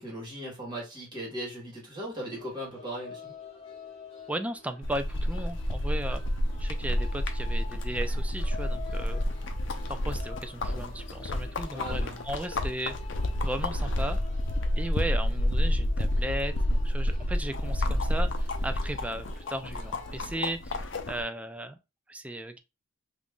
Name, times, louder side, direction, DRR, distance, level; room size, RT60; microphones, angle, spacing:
voice 1, 0.0-3.3 11.7-12.2, right 1 dB, 25° right, 1.7 m, -38 dB
sound 1, 2.3-20.5, left 4 dB, 30° left, 1.2 m, -49 dB
voice 2, 4.3-6.2 6.6-9.2 9.9-13.0 13.4-14.2 14.8-21.8 22.1-22.6, right 1 dB, 5° right, 0.3 m, -36 dB
sound 2, 4.8-21.2, left 1 dB, 65° left, 0.6 m, -29 dB
2.9 x 2.6 x 3.6 m
head